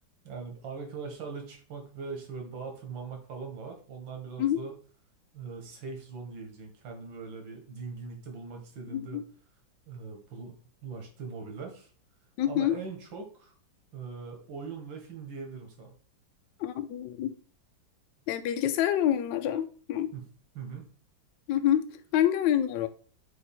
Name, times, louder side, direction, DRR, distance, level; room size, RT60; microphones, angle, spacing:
voice 1, 0.2-4.8 5.3-9.2 9.9-11.9 12.5-13.5 13.9-15.9 20.1-20.3 20.5-20.9, right 5 dB, 85° right, 2.2 m, -41 dB
voice 2, 8.9-9.2 12.4-12.8 16.6-17.3 18.3-20.1 21.5-22.9, left 11 dB, 75° left, 1.2 m, -27 dB
5.2 x 4.6 x 4.3 m
omnidirectional pair, 2.1 m